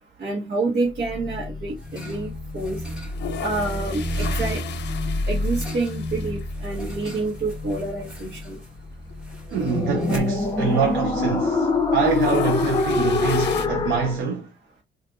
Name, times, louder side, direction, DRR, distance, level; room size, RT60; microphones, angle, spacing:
voice 1, 0.2-2.8 3.4-4.6 5.3-8.6, right 3 dB, 55° right, 1.2 m, -28 dB
sound 1, 0.9-14.2, left 3 dB, 20° left, 0.7 m, -27 dB
sound 2, 1.5-11.7, right 2 dB, 5° right, 2.1 m, -43 dB
sound 3, 2.9-6.5 6.9-7.0 7.1-7.2 8.2-8.4 8.8-8.9 9.1-11.0 11.3-11.6 11.9-13.7, left 8 dB, 60° left, 0.6 m, -35 dB
voice 2, 9.5-14.5, right 6 dB, 90° right, 0.8 m, -25 dB
3.6 x 2.5 x 2.4 m
cardioid pair, 90°, 20 cm